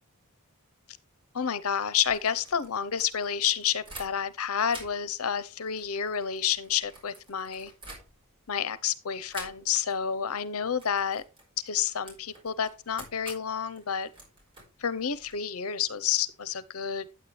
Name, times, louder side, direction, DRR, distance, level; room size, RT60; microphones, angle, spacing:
voice 1, 1.3-7.7 8.5-11.2 11.6-14.1 14.8-17.1, left 8 dB, 75° left, 0.7 m, -29 dB
sound 1, 1.9-4.4 4.7-8.5 9.3-10.0 10.2-10.5 10.8-15.4, right 2 dB, 25° right, 4.8 m, -49 dB
9.5 x 8.6 x 3.3 m
head